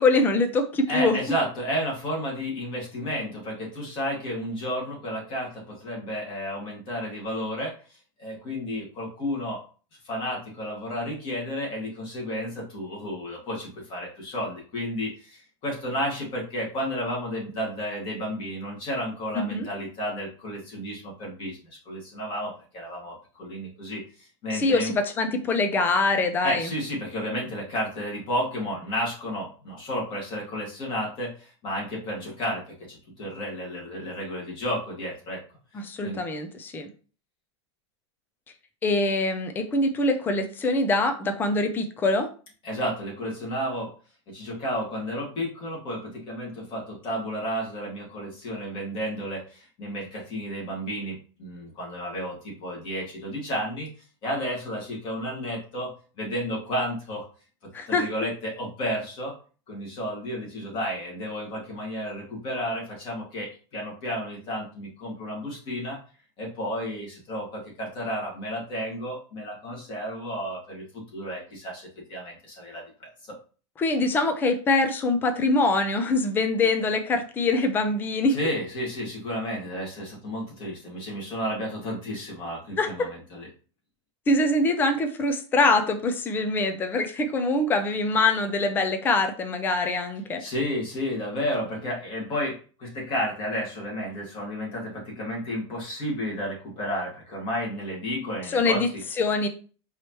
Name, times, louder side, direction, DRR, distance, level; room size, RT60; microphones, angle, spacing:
voice 1, 0.0-1.2 19.4-19.7 24.5-26.7 35.7-36.9 38.8-42.3 57.7-58.1 73.8-78.4 82.8-83.1 84.3-90.4 98.5-98.9 99.2-99.5, left 2 dB, 10° left, 7 dB, 0.4 m, -24 dB
voice 2, 0.9-9.6 10.0-21.6 21.9-24.9 26.4-35.4 35.7-36.2 42.6-43.9 44.3-53.9 54.2-55.9 56.2-57.3 57.9-59.3 59.7-66.0 66.4-72.8 73.3-73.4 78.3-83.5 90.4-99.0, equal, 30° left, -2 dB, 1.9 m, -32 dB
4.7 x 3.0 x 3.0 m, 0.38 s
supercardioid pair, 160°, 16 cm